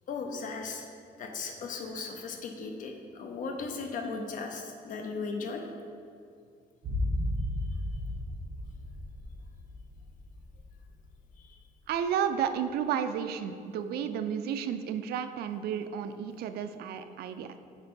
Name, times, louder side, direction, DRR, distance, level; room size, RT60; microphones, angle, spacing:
voice 1, 0.1-0.8 1.2-5.7 11.4-11.6, left 4 dB, 55° left, 3 dB, 0.8 m, -37 dB
sound 1, 6.8-11.1 11.3-11.4, left 1 dB, 55° right, 1.1 m, -34 dB
voice 2, 11.9-17.6, right 8 dB, 80° right, 9 dB, 0.4 m, -32 dB
6.8 x 4.2 x 4.4 m, 2.3 s
cardioid pair, 155°, 16 cm